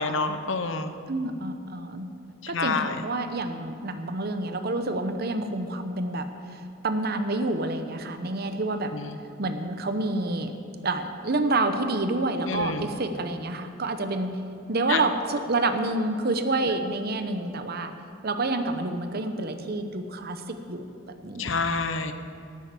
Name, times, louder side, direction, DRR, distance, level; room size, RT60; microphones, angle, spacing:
voice 1, 0.0-0.9 2.4-3.0 8.9-9.1 12.5-12.9 14.9-15.0 21.4-22.1, left 4 dB, 75° left, 9 dB, 0.9 m, -27 dB
voice 2, 1.1-2.1 2.5-8.9 9.4-10.5 10.8-14.4 14.7-17.9 18.2-20.9 21.2-21.6, right 2 dB, 55° right, 8 dB, 0.8 m, -28 dB
12.0 x 8.7 x 8.3 m, 2.5 s
head